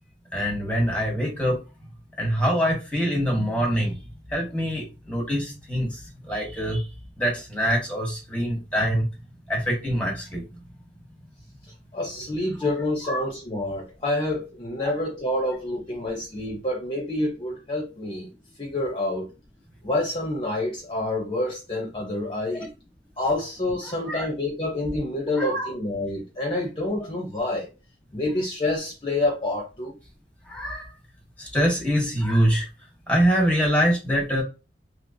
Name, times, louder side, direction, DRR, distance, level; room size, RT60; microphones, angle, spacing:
voice 1, 0.3-1.6 2.2-4.0 4.3-6.9 7.2-9.1 9.5-10.4 12.2-12.3 12.6-12.7 13.0-13.2 14.8-14.9 22.5-22.7 23.8-24.3 25.4-25.7 30.5-30.9 31.4-32.7 33.1-34.4, equal, 5° left, 1.2 m, -24 dB
voice 2, 11.9-18.3 18.6-19.3 19.8-22.7 23.2-27.7 28.1-29.9, left 1 dB, 30° left, 0.8 m, -28 dB
3.0 x 2.9 x 2.7 m
head